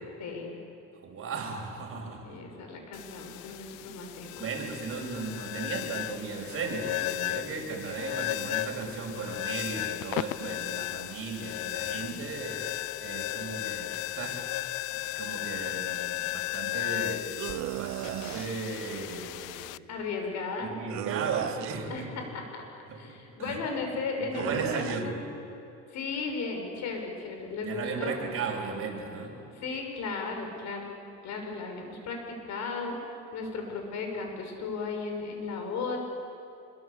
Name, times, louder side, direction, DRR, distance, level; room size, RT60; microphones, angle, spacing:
voice 1, 1.0-2.4 3.5-3.6 4.4-14.4 14.9-17.2 17.7-19.7 20.6-21.9 22.9-23.6 24.3-25.2 27.6-29.3, right 4 dB, 45° right, 0 dB, 6.6 m, -36 dB
voice 2, 2.2-4.5 19.9-20.7 21.9-22.2 22.5-25.2 25.9-28.2 29.5-30.9 31.2-33.0 33.3-36.0, left 4 dB, 65° left, 3 dB, 6.5 m, -35 dB
sound 1, 2.9-19.8, left 17 dB, 80° left, 0.7 m, -35 dB
sound 2, 17.4-18.5 20.9-21.9 24.3-25.0, right 15 dB, 65° right, 0.7 m, -35 dB
26.0 x 23.5 x 8.4 m, 2.8 s
cardioid pair, 120°, 30 cm